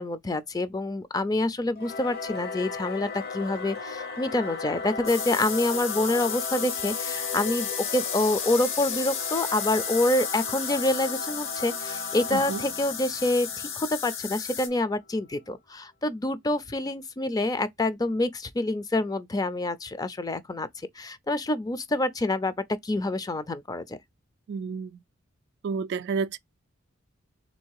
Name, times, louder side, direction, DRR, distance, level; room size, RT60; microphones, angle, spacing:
voice 1, 0.0-20.7 21.0-22.5 22.8-24.0, left 2 dB, 20° left, 0.4 m, -27 dB
Singing / Musical instrument, 1.8-14.7, left 4 dB, 50° left, 0.9 m, -37 dB
sound 1, 5.1-14.7, left 7 dB, 70° left, 1.3 m, -33 dB
voice 2, 12.3-12.6 24.5-25.0 25.6-26.4, right 5 dB, 60° right, 0.3 m, -30 dB
3.6 x 2.7 x 4.6 m
head